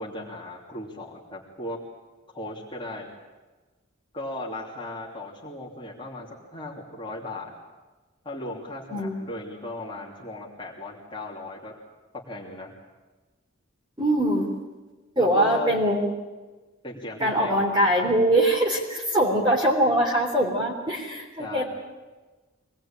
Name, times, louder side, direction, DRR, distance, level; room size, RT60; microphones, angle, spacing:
voice 1, 0.0-1.8 2.3-3.1 4.1-7.5 8.2-11.7 12.1-12.7 15.2-15.8 16.8-17.6 21.4-21.6, left 1 dB, 25° left, -3 dB, 3.1 m, -36 dB
voice 2, 14.0-14.5 15.1-16.1 17.2-21.6, right 1 dB, 20° right, -1 dB, 3.4 m, -22 dB
25.0 x 19.5 x 8.9 m, 1.2 s
head